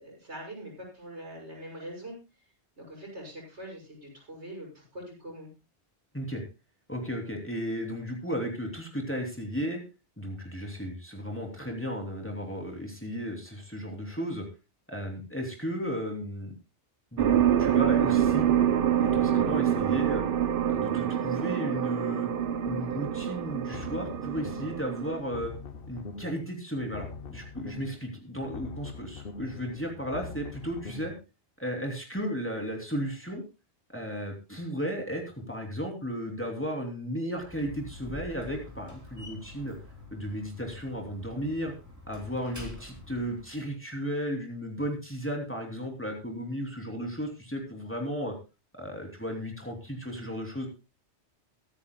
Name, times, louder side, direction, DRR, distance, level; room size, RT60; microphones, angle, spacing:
voice 1, 0.0-2.2 2.8-5.5, right 1 dB, 75° right, -1 dB, 6.8 m, -43 dB
voice 2, 6.9-9.8 10.2-14.4 14.9-16.5 17.1-17.3 17.6-18.5 19.0-20.2 20.7-22.3 22.6-25.5 25.9-31.1 31.6-33.4 33.9-35.2 35.5-39.7 40.1-41.7 42.1-48.3 48.7-50.7, equal, 10° left, 1 dB, 2.9 m, -34 dB
sound 1, 17.2-25.2, right 10 dB, 55° right, 0.9 m, -26 dB
sound 2, 23.6-24.9 25.2-26.5 26.8-28.1 28.4-31.2, left 4 dB, 60° left, 1.0 m, -42 dB
Slam, 37.3-43.5, left 2 dB, 15° right, 3.3 m, -47 dB
22.5 x 9.9 x 2.2 m, 0.28 s
omnidirectional pair, 1.2 m